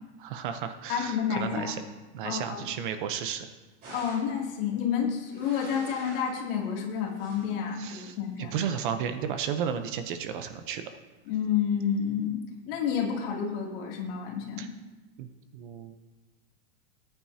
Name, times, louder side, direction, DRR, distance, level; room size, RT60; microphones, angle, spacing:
voice 1, 0.2-1.8 2.1-3.5 7.8-10.8 14.6-14.7 15.2-15.3 15.5-15.9, right 8 dB, 45° right, 8 dB, 0.8 m, -33 dB
voice 2, 0.9-1.7 2.2-2.7 3.9-8.5 11.3-14.7, left 7 dB, 50° left, -1 dB, 2.7 m, -30 dB
sound 1, 3.8-4.4 5.1-6.4 6.9-7.6 8.4-8.8, right 1 dB, 25° right, 4.2 m, -47 dB
19.0 x 9.2 x 2.8 m, 1.2 s
supercardioid pair, 175°, 37 cm